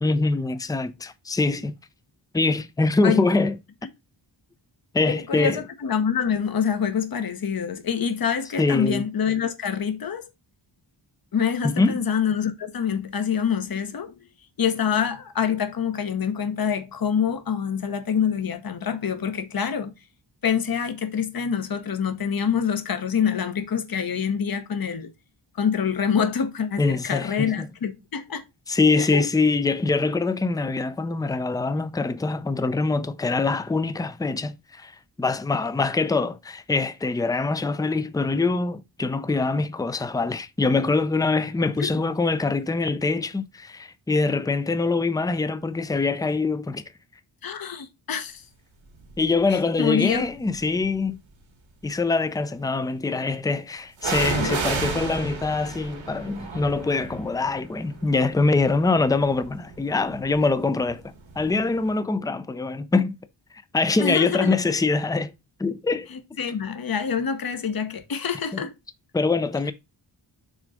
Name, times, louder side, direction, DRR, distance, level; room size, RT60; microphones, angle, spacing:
voice 1, 0.0-1.7 2.3-3.5 4.9-5.6 8.6-9.0 11.6-12.0 26.8-27.3 27.6-27.7 28.7-34.9 35.2-46.8 49.2-51.2 51.8-63.1 63.7-65.3 65.6-66.1 69.1-69.7, left 3 dB, 10° left, 0.4 m, -24 dB
voice 2, 5.1-10.3 11.3-14.2 14.6-19.9 20.4-25.1 25.6-28.4 29.0-29.2 41.8-41.9 47.4-48.4 49.5-50.3 54.4-54.6 64.0-64.6 66.1-68.7, left 7 dB, 50° left, 1.0 m, -26 dB
sound 1, 49.0-49.4 50.1-51.1 54.0-61.6 61.9-62.0, right 4 dB, 80° right, 1.8 m, -33 dB
6.3 x 4.0 x 4.8 m
wide cardioid pair, 130°, 46 cm